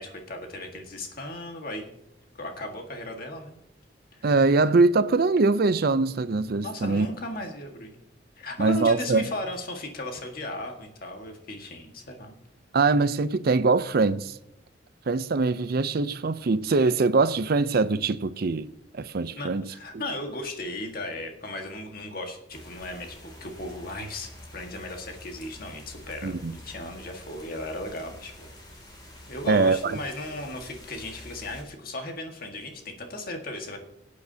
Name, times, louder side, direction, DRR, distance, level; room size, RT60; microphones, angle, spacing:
voice 1, 0.0-1.9 2.4-3.6 4.2-4.3 6.6-8.0 8.4-12.4 19.4-28.5 29.3-33.8, left 1 dB, 50° left, 1.7 m, -36 dB
voice 2, 4.2-7.1 8.6-9.3 12.7-14.3 15.1-18.7 18.9-19.6 26.2-26.5 29.5-29.9, right 3 dB, 55° right, 0.5 m, -23 dB
sound 1, 22.5-31.6, left 1 dB, 25° left, 2.6 m, -47 dB
18.5 x 8.4 x 2.8 m
head